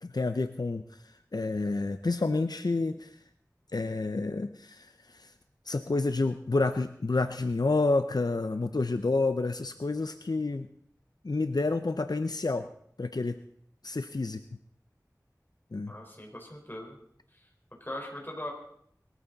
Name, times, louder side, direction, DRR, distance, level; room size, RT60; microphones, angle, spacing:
voice 1, 0.0-3.2 3.7-5.3 5.7-10.7 11.2-12.7 13.0-13.4 13.8-14.4 15.7-15.9, left 3 dB, 80° left, 9 dB, 0.6 m, -29 dB
voice 2, 15.9-17.0 17.3-17.5 17.8-18.5, left 1 dB, 30° left, 0 dB, 4.4 m, -40 dB
20.5 x 14.0 x 4.0 m, 0.67 s
wide cardioid pair, 40°, 7 cm